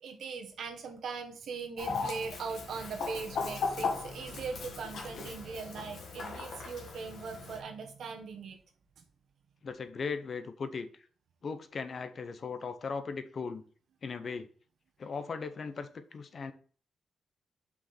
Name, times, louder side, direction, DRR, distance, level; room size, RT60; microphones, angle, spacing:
voice 1, 0.0-8.6 9.0-9.1, right 5 dB, 75° right, 1.6 m, -40 dB
Chicken rooster, 1.8-7.6, left 4 dB, 70° left, 1.6 m, -37 dB
voice 2, 9.6-10.9 11.4-13.6 14.0-14.5 15.0-16.5, left 5 dB, 45° left, 0.8 m, -38 dB
5.7 x 5.0 x 5.8 m
wide cardioid pair, 135°, 0 cm